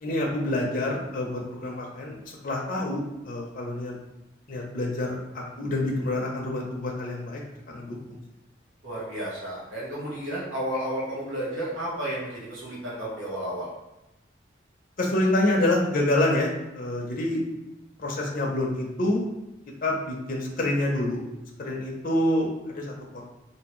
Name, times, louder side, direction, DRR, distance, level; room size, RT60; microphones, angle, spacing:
voice 1, 0.0-3.9 4.5-7.4 7.7-8.2 15.0-16.5 16.7-17.4 18.0-19.2 19.8-21.2 21.6-23.2, left 1 dB, 45° left, -2 dB, 0.6 m, -27 dB
voice 2, 8.8-13.7, right 1 dB, 85° right, -7 dB, 1.2 m, -32 dB
3.5 x 2.8 x 3.0 m, 0.94 s
head